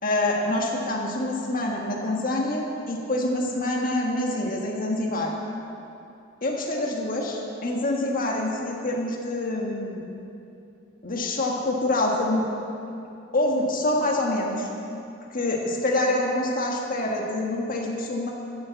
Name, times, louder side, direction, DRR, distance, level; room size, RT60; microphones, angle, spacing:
voice 1, 0.0-5.3 6.4-10.1 11.0-12.5 13.3-14.7 15.3-18.3, left 1 dB, 45° left, 0 dB, 1.7 m, -26 dB
14.0 x 7.9 x 7.1 m, 2.7 s
head